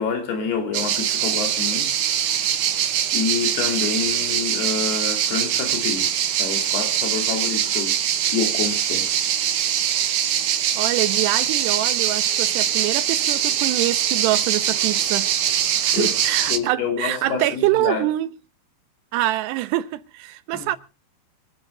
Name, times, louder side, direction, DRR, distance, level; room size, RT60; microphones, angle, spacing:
voice 1, 0.0-2.5 3.1-6.1 6.4-8.0 8.2-9.1 15.9-16.1 16.5-18.1 20.5-20.7, left 6 dB, 70° left, 4.4 m, -28 dB
sound 1, 0.7-16.6, right 10 dB, 65° right, 2.2 m, -22 dB
voice 2, 10.8-15.3 15.8-18.3 19.1-20.8, right 16 dB, 85° right, 3.1 m, -25 dB
24.5 x 10.0 x 3.8 m
omnidirectional pair, 4.8 m